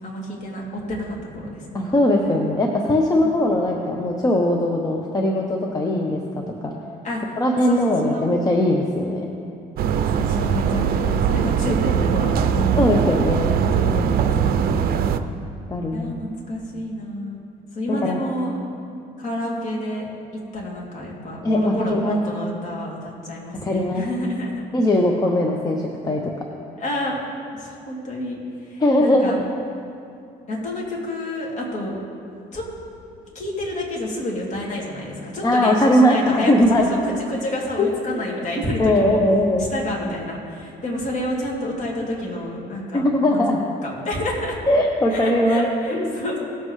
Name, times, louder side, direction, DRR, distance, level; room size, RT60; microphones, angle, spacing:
voice 1, 0.0-0.6 0.9-1.9 2.3-2.6 3.2-3.3 7.0-7.2 7.6-8.2 10.1-12.8 13.5-14.9 15.9-17.4 17.7-18.5 19.2-20.1 20.5-24.6 26.8-27.2 27.6-28.4 28.7-29.4 30.5-32.0 32.5-32.7 33.3-39.2 39.6-43.5 43.8-44.6 45.1-46.4, left 1 dB, 45° left, -4 dB, 2.8 m, -29 dB
voice 2, 1.7-6.2 6.6-6.7 7.4-9.3 12.8-13.5 15.7-16.1 17.9-18.2 21.4-22.2 23.5-24.1 24.7-26.2 28.8-29.4 35.4-36.9 37.8-37.9 38.8-39.7 42.9-43.6 44.7-45.7 45.9-46.1, left 1 dB, 20° left, 0 dB, 0.9 m, -20 dB
sound 1, 9.8-15.2, right 7 dB, 65° right, 0.6 m, -21 dB
18.0 x 7.6 x 3.2 m, 2.6 s
cardioid pair, 110°, 17 cm